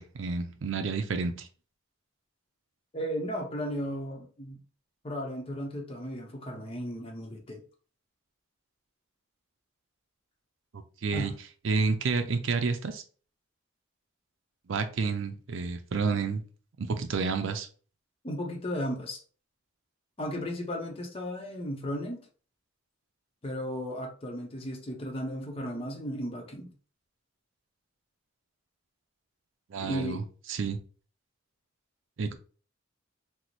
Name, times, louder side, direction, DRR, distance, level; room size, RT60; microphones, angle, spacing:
voice 1, 0.0-1.5 10.7-11.3 11.6-13.0 14.7-16.4 16.8-17.7 29.7-30.2 30.5-30.8 32.2-32.3, right 4 dB, 70° right, 0.5 m, -30 dB
voice 2, 2.9-4.6 5.0-7.6 11.1-11.3 18.2-19.2 20.2-22.3 23.4-26.7 29.8-30.2, equal, 30° left, 0.7 m, -35 dB
3.0 x 2.0 x 4.0 m
head